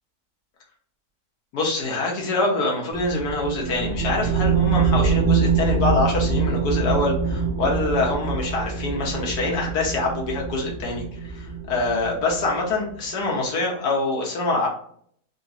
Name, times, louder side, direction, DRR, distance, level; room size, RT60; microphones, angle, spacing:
voice 1, 1.5-14.7, left 2 dB, 85° left, -1 dB, 1.6 m, -25 dB
sound 1, 2.9-12.9, right 5 dB, 75° right, 0.5 m, -25 dB
3.7 x 3.1 x 2.8 m, 0.62 s
omnidirectional pair, 1.6 m